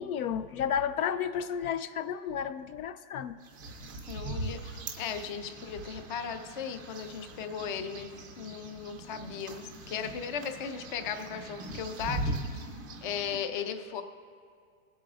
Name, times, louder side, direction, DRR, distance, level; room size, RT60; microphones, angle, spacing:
voice 1, 0.0-3.4, left 8 dB, 70° left, 12 dB, 0.6 m, -32 dB
sound 1, 3.4-13.4, right 2 dB, 15° right, 0.4 m, -40 dB
voice 2, 4.1-8.1 8.4-12.6 13.0-14.0, left 7 dB, 35° left, 8 dB, 0.6 m, -37 dB
22.0 x 8.3 x 2.4 m, 2.3 s
supercardioid pair, 170°, 44 cm